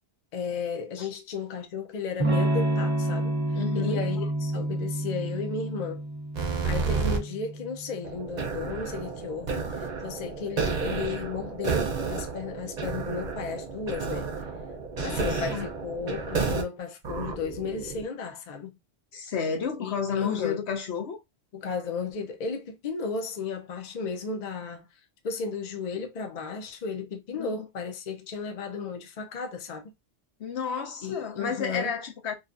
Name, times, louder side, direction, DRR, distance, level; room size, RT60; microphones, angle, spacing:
voice 1, 0.3-6.0 6.4-14.3 15.0-18.8 19.8-20.6 21.5-24.9 25.2-29.9 31.0-31.9, left 5 dB, 50° left, 0.6 m, -34 dB
Electric guitar / Strum, 2.2-7.9, right 1 dB, 10° right, 0.6 m, -29 dB
voice 2, 3.5-4.1 15.0-15.7 19.1-21.2 27.3-27.7 30.4-32.3, left 6 dB, 80° left, 1.0 m, -31 dB
sound 1, 6.3-7.2 8.0-16.6 17.0-18.0, right 5 dB, 50° right, 0.6 m, -31 dB
2.6 x 2.4 x 2.4 m
omnidirectional pair, 1.1 m